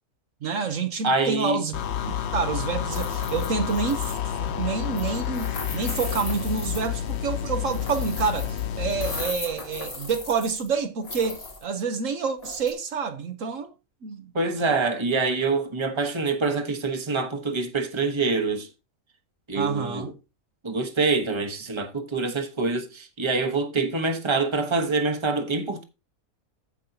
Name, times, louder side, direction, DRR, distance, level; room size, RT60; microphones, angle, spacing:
voice 1, 0.4-1.8 2.0-4.1 4.4-13.7 14.0-14.3 14.6-14.7 19.5-20.1, right 5 dB, 65° right, 1.3 m, -28 dB
voice 2, 1.0-1.6 14.3-18.7 19.5-20.1 20.6-25.8, right 3 dB, 20° right, 1.1 m, -25 dB
sound 1, 1.7-9.3, left 10 dB, 60° left, 0.8 m, -29 dB
sound 2, 2.9-4.3 5.0-7.1 7.7-8.6 8.9-10.7 11.0-11.6 12.4-12.7, left 3 dB, 80° left, 2.8 m, -37 dB
15.5 x 5.3 x 2.8 m
omnidirectional pair, 1.5 m